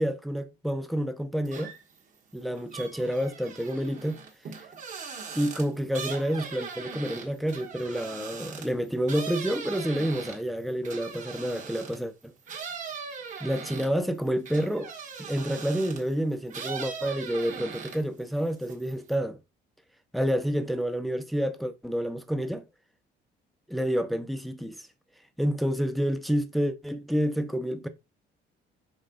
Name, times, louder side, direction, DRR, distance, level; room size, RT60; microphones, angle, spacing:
voice 1, 0.0-1.7 2.3-4.2 5.3-12.3 13.4-14.9 15.2-19.4 20.1-22.7 23.7-24.9 25.4-27.9, equal, ahead, 0.7 m, -29 dB
sound 1, 1.5-2.0 2.3-12.1 12.5-16.1 16.5-18.2 18.5-19.2, right 6 dB, 45° right, 1.6 m, -40 dB
5.6 x 3.8 x 5.2 m
cardioid pair, 145°, 19 cm